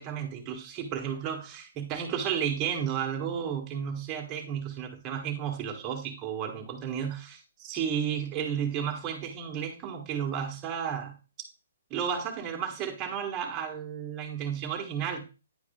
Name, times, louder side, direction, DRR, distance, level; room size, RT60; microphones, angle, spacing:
voice 1, 0.0-11.1 11.9-15.2, right 8 dB, 25° right, 2 dB, 1.4 m, -33 dB
9.8 x 4.8 x 2.3 m, 0.31 s
hypercardioid pair, 155°, 0 cm